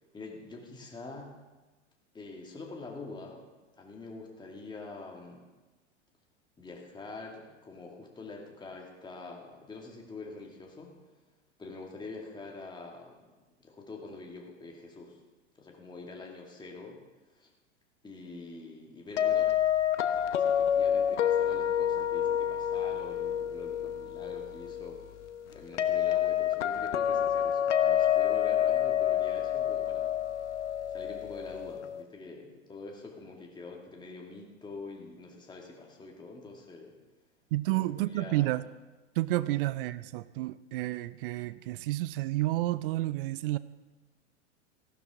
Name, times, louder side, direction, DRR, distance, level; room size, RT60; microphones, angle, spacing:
voice 1, 0.1-1.3 2.1-3.5 3.8-5.5 6.6-10.9 11.6-13.2 13.6-15.2 15.6-17.0 17.3-17.5 18.0-19.6 20.4-25.1 25.5-30.2 30.9-37.0 37.7-38.6 39.5-39.6, left 3 dB, 10° left, -1 dB, 2.1 m, -45 dB
sound 1, 19.2-32.0, left 9 dB, 65° left, 0.8 m, -28 dB
voice 2, 37.5-38.6 39.2-43.6, right 17 dB, 45° right, 17 dB, 0.6 m, -30 dB
15.0 x 12.0 x 3.7 m, 1.2 s
figure-of-eight pair, 95°, 37 cm